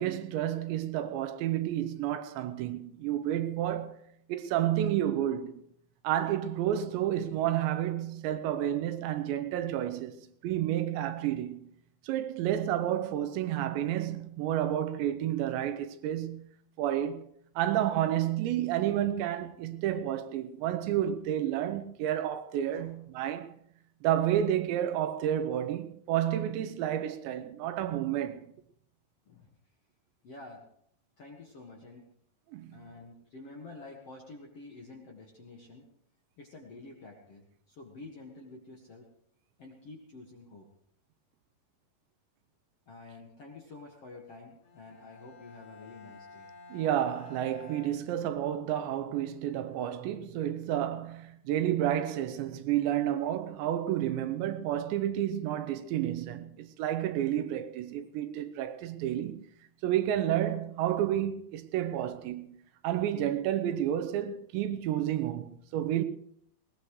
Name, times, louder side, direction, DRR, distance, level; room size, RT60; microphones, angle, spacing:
voice 1, 0.0-4.0 4.3-5.6 6.0-11.7 12.0-16.5 16.8-17.3 17.6-23.6 24.0-28.5 32.5-32.8 46.7-59.4 59.8-62.6 62.8-66.0, right 11 dB, 80° right, 3.1 m, -30 dB
voice 2, 30.2-30.6 31.2-32.0 32.7-35.8 36.4-39.1 39.6-40.7 42.9-46.5, left 3 dB, 50° left, 1.9 m, -49 dB
Bowed string instrument, 44.6-48.7, left 3 dB, 80° left, 4.8 m, -51 dB
20.5 x 18.5 x 3.2 m
omnidirectional pair, 5.2 m